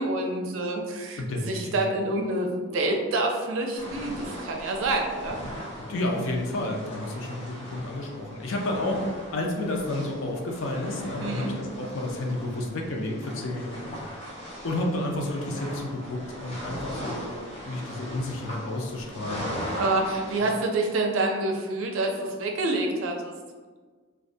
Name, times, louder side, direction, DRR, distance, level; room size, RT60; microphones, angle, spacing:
voice 1, 0.0-5.4 11.2-11.5 19.8-23.3, right 2 dB, 80° right, 2 dB, 0.4 m, -27 dB
voice 2, 1.2-1.8 5.8-9.0 9.3-14.1 14.6-17.3 17.6-19.5 20.4-20.6, left 1 dB, 80° left, 1 dB, 0.4 m, -31 dB
sound 1, 3.8-20.4, equal, 30° left, 0.7 m, -39 dB
2.2 x 2.1 x 2.6 m, 1.4 s
head